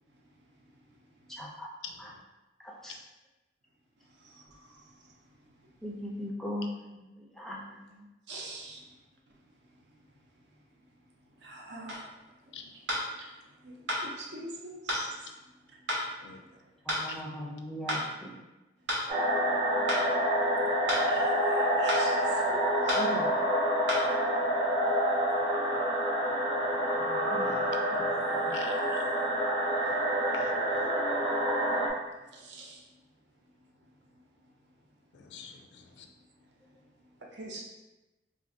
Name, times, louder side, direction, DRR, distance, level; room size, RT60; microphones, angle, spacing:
voice 1, 1.4-1.7 2.0-2.1 2.6-3.0 5.8-6.8 7.1-8.1 16.9-18.4 22.9-23.3 27.0-27.7 28.0-28.6, equal, ahead, -3 dB, 0.4 m, -40 dB
voice 2, 4.1-5.1 5.6-5.7 8.3-8.8 11.4-12.1 13.2-13.3 13.6-15.2 16.5-16.7 20.9-23.0 26.3-26.4 27.3-27.7 28.0-28.6 32.3-32.8 37.3-37.6, right 2 dB, 70° right, -1 dB, 0.6 m, -46 dB
sound 1, 11.9-12.1 12.9-13.1 13.9-14.0 14.9-15.1 15.9-16.1 16.9-17.1 17.9-18.1 18.9-19.1 19.9-20.1 20.9-21.1 21.9-22.1 22.9-23.1 23.9-24.1, equal, 90° right, 1.0 m, -30 dB
sound 2, 19.1-31.9, equal, 25° right, 0.7 m, -28 dB
voice 3, 28.5-29.0 29.8-30.0 30.3-30.9 35.1-36.1, left 6 dB, 70° left, 4 dB, 0.4 m, -45 dB
2.5 x 2.5 x 3.7 m, 1.0 s
head